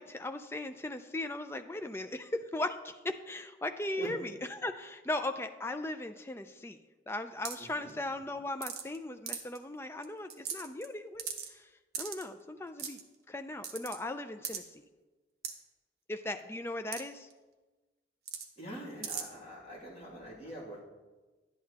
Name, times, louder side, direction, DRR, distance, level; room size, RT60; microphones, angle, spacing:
voice 1, 0.0-6.8 7.1-11.7 12.0-13.0 13.3-14.8 16.1-17.3, left 2 dB, 15° left, 8 dB, 0.3 m, -38 dB
sound 1, 7.5-7.7 8.6-9.0 9.3-9.6 10.0-10.1 10.3-10.9 11.2-11.5 11.9-12.3 12.8-13.0 13.6-14.0 14.4-14.6 15.4-15.5 16.9-17.0 17.3-17.4 18.3-18.5 19.0-19.2, right 7 dB, 60° right, 0.9 m, -37 dB
voice 2, 7.6-7.9 18.6-20.8, right 1 dB, 35° left, -7 dB, 2.5 m, -44 dB
11.0 x 8.5 x 2.9 m, 1.2 s
head